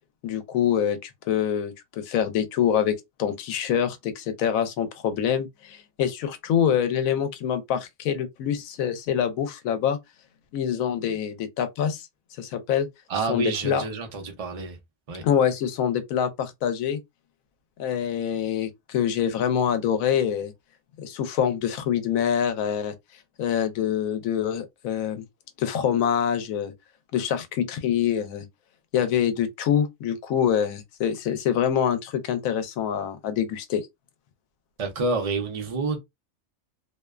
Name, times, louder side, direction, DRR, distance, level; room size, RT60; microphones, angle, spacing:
voice 1, 0.2-10.0 10.5-12.1 12.4-12.9 13.3-13.8 15.2-17.0 17.8-20.5 21.0-22.9 23.4-25.2 25.6-26.7 27.1-28.5 28.9-33.9, left 9 dB, 80° left, 1.0 m, -25 dB
voice 2, 13.1-14.8 15.1-15.2 34.8-36.0, right 3 dB, 70° right, 0.3 m, -28 dB
2.6 x 2.1 x 2.2 m
omnidirectional pair, 1.4 m